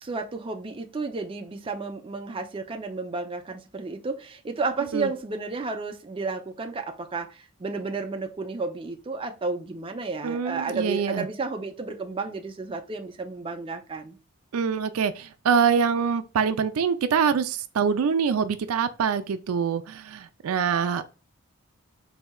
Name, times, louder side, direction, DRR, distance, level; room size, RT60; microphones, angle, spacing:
voice 1, 0.0-14.2, right 3 dB, 25° right, 0.4 m, -32 dB
voice 2, 10.2-11.3 14.5-21.1, right 6 dB, 85° right, 0.4 m, -25 dB
4.2 x 2.7 x 2.2 m
head